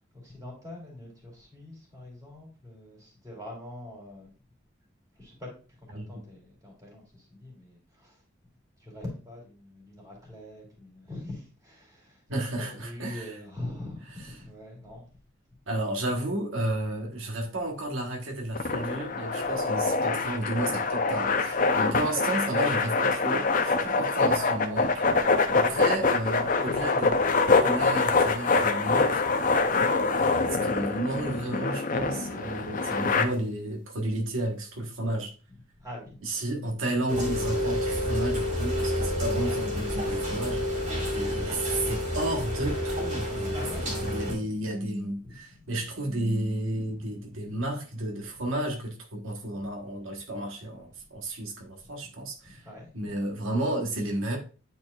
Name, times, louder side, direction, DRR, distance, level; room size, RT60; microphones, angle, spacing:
voice 1, 0.1-4.3 5.1-5.5 5.8-8.2 8.8-15.1 19.4-19.6 23.8-24.0 25.5-25.8 35.8-36.3 43.5-44.7 45.2-45.4 47.4-47.6 51.8-52.1 52.4-52.9, left 1 dB, 15° right, 2.6 m, -44 dB
voice 2, 12.3-13.3 15.7-25.0 25.5-27.1 27.6-29.2 29.9-35.3 36.2-40.9 41.1-52.6 52.9-54.4, right 1 dB, 90° right, 1.2 m, -32 dB
sound 1, 18.5-33.2, left 4 dB, 40° left, 0.5 m, -25 dB
Rain, 37.1-44.3, left 1 dB, 35° right, 2.2 m, -29 dB
9.4 x 4.3 x 2.3 m
head